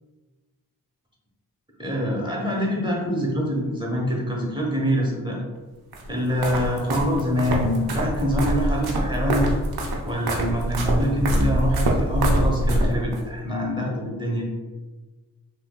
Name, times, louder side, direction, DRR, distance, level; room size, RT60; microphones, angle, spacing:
voice 1, 1.8-5.5 6.1-9.6 10.1-14.5, equal, 15° right, -2 dB, 1.0 m, -25 dB
sound 1, 5.9-13.2, right 1 dB, 85° right, 0.6 m, -25 dB
3.4 x 2.8 x 2.3 m, 1.2 s
cardioid pair, 45°, 37 cm